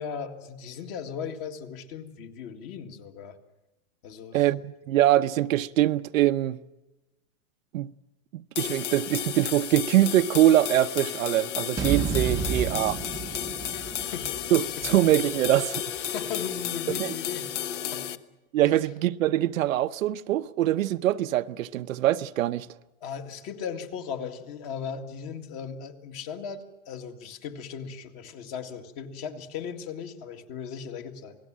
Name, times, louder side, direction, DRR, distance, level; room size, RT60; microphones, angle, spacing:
voice 1, 0.0-3.4 4.0-4.5 12.3-12.6 13.7-14.3 14.8-14.9 16.0-17.5 17.8-18.1 18.6-18.8 23.0-31.4, left 7 dB, 30° left, 2.0 m, -37 dB
voice 2, 4.3-6.6 7.7-7.9 8.3-13.0 14.5-15.8 17.0-17.1 18.5-22.7, right 13 dB, 65° right, 0.8 m, -23 dB
sound 1, 8.6-18.2, left 10 dB, 55° left, 1.2 m, -33 dB
sound 2, 11.8-16.0, right 6 dB, 10° right, 0.8 m, -32 dB
28.0 x 19.0 x 7.5 m
supercardioid pair, 165°, 43 cm